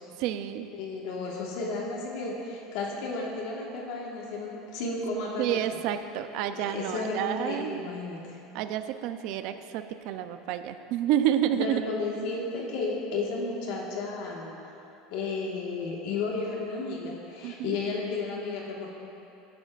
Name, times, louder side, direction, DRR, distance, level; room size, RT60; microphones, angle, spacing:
voice 1, 0.2-0.7 5.4-7.9 8.5-11.8 17.4-17.8, right 11 dB, 60° right, 9 dB, 0.5 m, -29 dB
voice 2, 0.7-5.6 6.5-8.3 11.6-14.6 15.1-18.9, left 3 dB, 65° left, -2 dB, 1.6 m, -33 dB
17.0 x 10.5 x 2.5 m, 2.9 s
supercardioid pair, 150°, 0 cm